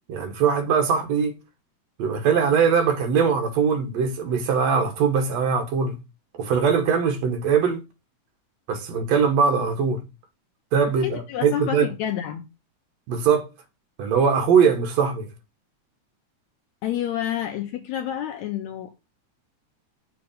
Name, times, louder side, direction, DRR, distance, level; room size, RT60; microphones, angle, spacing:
voice 1, 0.1-1.4 2.0-6.0 6.4-7.8 8.7-10.0 10.7-11.9 13.1-13.5 14.0-15.3, right 6 dB, 65° right, 2.2 m, -21 dB
voice 2, 11.0-12.5 16.8-18.9, left 11 dB, 80° left, 1.9 m, -29 dB
7.1 x 3.2 x 5.1 m
omnidirectional pair, 3.4 m